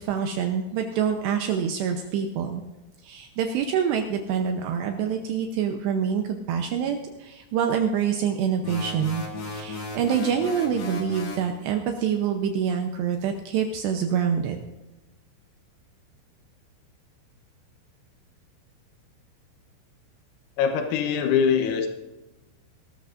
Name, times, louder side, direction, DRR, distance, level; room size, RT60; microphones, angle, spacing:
voice 1, 0.0-2.6 3.0-14.6, right 7 dB, 80° right, 4 dB, 2.5 m, -26 dB
sound 1, 8.6-11.5, left 3 dB, 50° left, 2.2 m, -35 dB
voice 2, 20.6-21.9, left 7 dB, 85° left, 5 dB, 3.8 m, -22 dB
20.5 x 13.0 x 2.6 m, 1.0 s
omnidirectional pair, 5.9 m